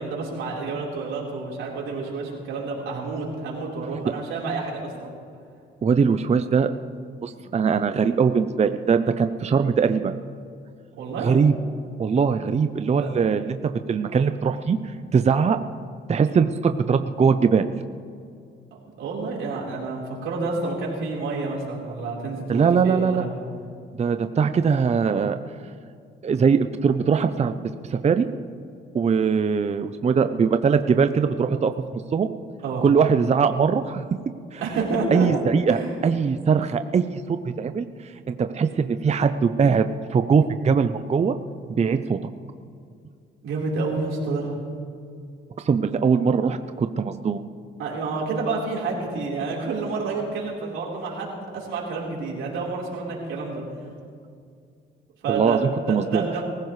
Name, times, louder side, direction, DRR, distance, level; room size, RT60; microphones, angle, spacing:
voice 1, 0.0-5.1 11.0-11.3 13.0-13.1 19.0-23.3 32.6-32.8 34.6-35.3 35.7-35.9 43.4-44.6 47.8-53.6 55.2-55.6 55.9-56.4, right 3 dB, 85° right, -3 dB, 4.3 m, -29 dB
voice 2, 5.8-6.7 7.2-10.1 11.2-11.5 12.0-15.6 16.1-17.7 22.5-23.2 24.0-25.4 26.2-28.3 28.9-32.3 32.8-34.0 34.5-34.6 35.1-41.4 41.8-42.2 45.6-47.4 55.3-56.2, right 6 dB, 35° right, 9 dB, 0.6 m, -21 dB
23.5 x 15.5 x 3.3 m, 2.3 s
cardioid pair, 90°, 20 cm